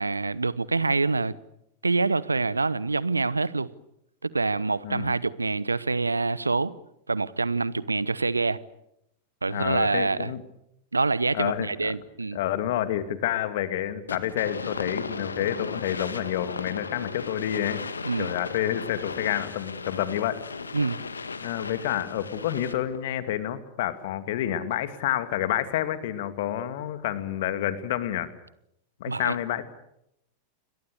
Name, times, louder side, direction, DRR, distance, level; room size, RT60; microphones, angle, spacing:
voice 1, 0.0-1.3 1.8-3.7 4.2-6.7 7.1-8.6 9.4-10.3 10.9-12.4 18.0-18.3 20.7-21.0 29.1-29.4, right 3 dB, 80° right, 1.0 m, -26 dB
voice 2, 4.8-5.2 9.5-10.4 11.3-11.9 12.3-17.8 18.2-20.4 21.4-28.3 29.0-29.6, left 11 dB, 55° left, 2.4 m, -29 dB
sound 1, 14.1-23.0, left 4 dB, 75° left, 1.7 m, -36 dB
30.0 x 22.5 x 6.7 m
figure-of-eight pair, 90°, 0 cm